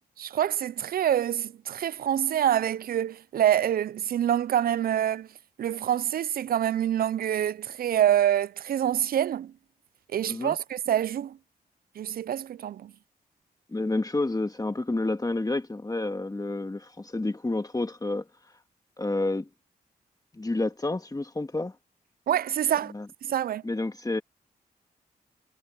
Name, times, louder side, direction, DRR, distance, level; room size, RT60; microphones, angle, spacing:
voice 1, 0.2-5.3 5.6-9.5 10.1-11.4 12.0-12.9 22.3-22.9 23.3-23.6, right 10 dB, 70° right, 0.4 m, -26 dB
voice 2, 13.7-18.2 19.0-19.5 20.3-21.7 22.9-23.1 23.6-24.2, left 2 dB, 25° left, 1.8 m, -29 dB
cardioid pair, 65°, 16 cm